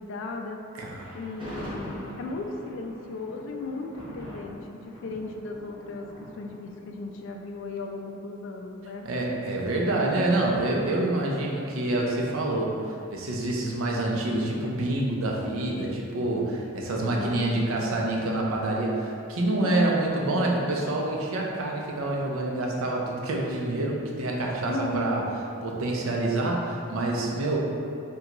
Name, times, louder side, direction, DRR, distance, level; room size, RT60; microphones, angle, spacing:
voice 1, 0.0-0.6 1.1-6.1 6.3-9.1 17.0-17.6 19.6-20.5 24.7-25.2, left 3 dB, 65° left, 3 dB, 0.3 m, -36 dB
Thunder, 0.9-8.1, equal, 25° right, 0.8 m, -43 dB
voice 2, 9.0-25.2 25.6-27.6, right 2 dB, 80° right, -1 dB, 0.5 m, -27 dB
2.9 x 2.3 x 3.7 m, 2.5 s
head